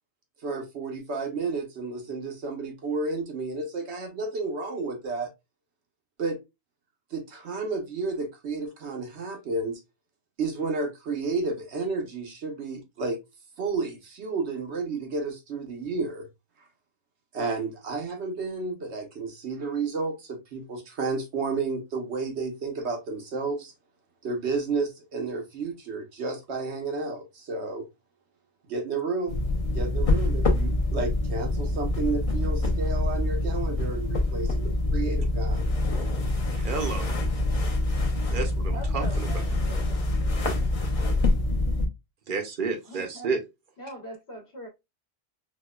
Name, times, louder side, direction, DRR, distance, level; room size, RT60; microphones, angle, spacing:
voice 1, 0.4-5.3 6.2-6.4 7.1-9.8 10.4-13.2 13.6-16.3 17.3-23.7 24.2-27.9 28.7-29.4 29.7-35.7, right 3 dB, 80° right, 1.2 m, -31 dB
sound 1, 29.3-41.9, left 2 dB, 40° left, 0.7 m, -26 dB
voice 2, 36.5-37.1 38.3-39.3 42.3-43.4, right 5 dB, 55° right, 0.8 m, -31 dB
voice 3, 38.7-40.1 42.9-43.3 43.8-44.7, right 1 dB, 70° left, 1.3 m, -42 dB
4.6 x 2.2 x 2.3 m
omnidirectional pair, 1.1 m